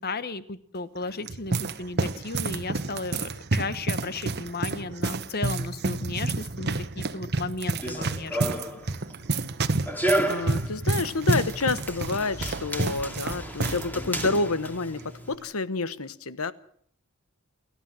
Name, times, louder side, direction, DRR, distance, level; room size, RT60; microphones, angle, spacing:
voice 1, 0.0-8.5, left 3 dB, 45° left, 14 dB, 1.2 m, -34 dB
sound 1, 1.0-13.9 14.1-14.3 15.0-15.3, right 3 dB, 50° right, 1.1 m, -29 dB
Run, 7.6-15.3, right 1 dB, 10° left, 2.4 m, -32 dB
voice 2, 10.3-16.5, left 3 dB, 80° left, 15 dB, 1.1 m, -29 dB
29.0 x 13.5 x 7.6 m, 0.63 s
head